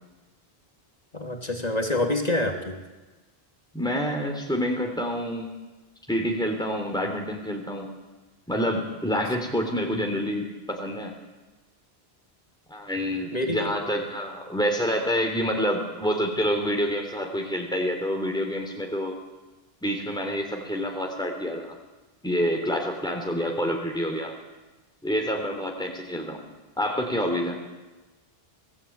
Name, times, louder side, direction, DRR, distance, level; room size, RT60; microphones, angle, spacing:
voice 1, 1.1-2.8 13.3-13.8, left 1 dB, 40° left, 3 dB, 3.1 m, -27 dB
voice 2, 3.7-5.5 6.1-7.9 8.5-11.1 12.7-19.2 19.8-21.7 22.2-24.3 25.0-26.4 26.8-27.6, equal, 5° left, 2 dB, 3.3 m, -27 dB
26.0 x 18.0 x 8.7 m, 1.2 s
omnidirectional pair, 1.0 m